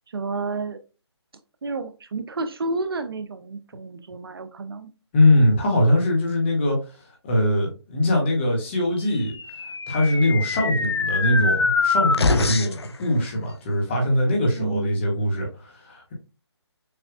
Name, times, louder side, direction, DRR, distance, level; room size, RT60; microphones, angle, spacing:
voice 1, 0.1-0.8 1.6-4.9 14.6-15.0, right 3 dB, 55° right, 0.6 m, -31 dB
voice 2, 5.1-6.8 7.2-9.3 9.9-16.1, left 1 dB, 25° left, 1.7 m, -21 dB
sound 1, 9.3-12.9, left 4 dB, 65° left, 0.8 m, -24 dB
6.7 x 3.3 x 2.3 m
figure-of-eight pair, 160°, 15 cm